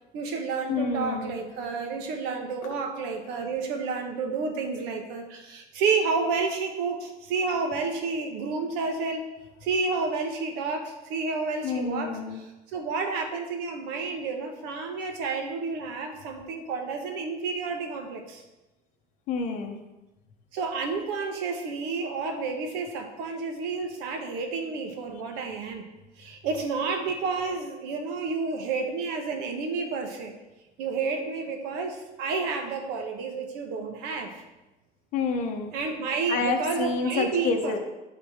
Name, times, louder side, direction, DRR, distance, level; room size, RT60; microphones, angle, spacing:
voice 1, 0.1-9.3 9.6-18.4 20.5-25.9 26.2-30.3 30.8-34.3 35.7-37.8, right 4 dB, 85° right, 4 dB, 1.3 m, -30 dB
voice 2, 0.7-1.4 11.6-12.4 19.3-19.8 35.1-35.7 36.3-37.8, left 4 dB, 50° left, 5 dB, 0.9 m, -28 dB
11.5 x 4.0 x 3.6 m, 1.0 s
cardioid pair, 175°, 17 cm